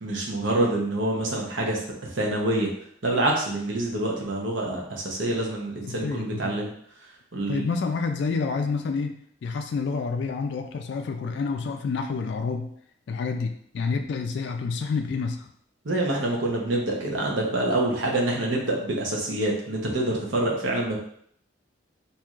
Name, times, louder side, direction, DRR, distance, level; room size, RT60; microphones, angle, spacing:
voice 1, 0.0-1.8 2.2-2.7 3.0-6.7 7.3-7.7 15.8-21.0, right 1 dB, 80° right, -1 dB, 0.9 m, -26 dB
voice 2, 5.8-6.6 7.5-12.7 13.1-15.5, left 4 dB, 60° left, 4 dB, 0.3 m, -29 dB
4.4 x 2.7 x 2.4 m, 0.66 s
head